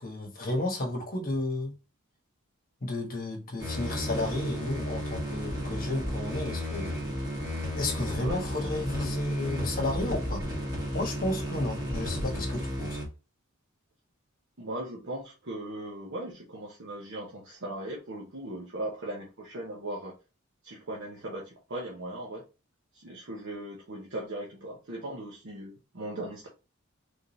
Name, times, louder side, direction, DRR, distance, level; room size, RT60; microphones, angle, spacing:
voice 1, 0.0-1.7 2.8-7.0 7.7-10.4 10.9-13.0, left 2 dB, 45° left, 1.3 m, -32 dB
sound 1, 3.6-13.0, equal, 20° right, 2.2 m, -33 dB
voice 2, 8.2-9.2 14.6-20.2 20.6-22.4 22.9-26.5, right 1 dB, 60° right, 1.0 m, -38 dB
3.8 x 3.6 x 2.7 m
head